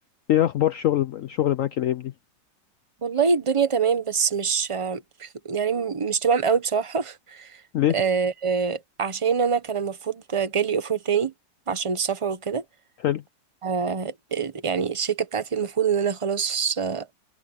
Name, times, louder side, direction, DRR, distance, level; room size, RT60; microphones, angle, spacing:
voice 1, 0.3-2.1 7.7-8.0 13.0-13.2, left 12 dB, 75° left, 0.7 m, -23 dB
voice 2, 3.0-7.6 7.9-11.3 11.7-12.6 13.6-17.1, right 6 dB, 25° right, 0.7 m, -25 dB
omnidirectional pair, 2.0 m